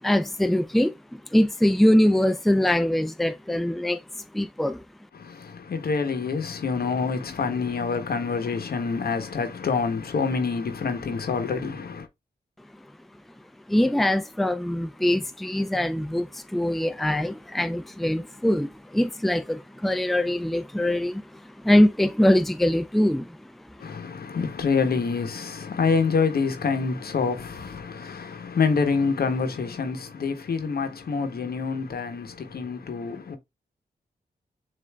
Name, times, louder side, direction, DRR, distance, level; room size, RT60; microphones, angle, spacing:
voice 1, 0.0-4.8 13.7-23.5, left 1 dB, ahead, 0.6 m, -23 dB
voice 2, 5.1-12.1 23.8-33.4, left 5 dB, 65° left, 0.9 m, -27 dB
7.0 x 2.6 x 2.3 m
supercardioid pair, 45°, 17 cm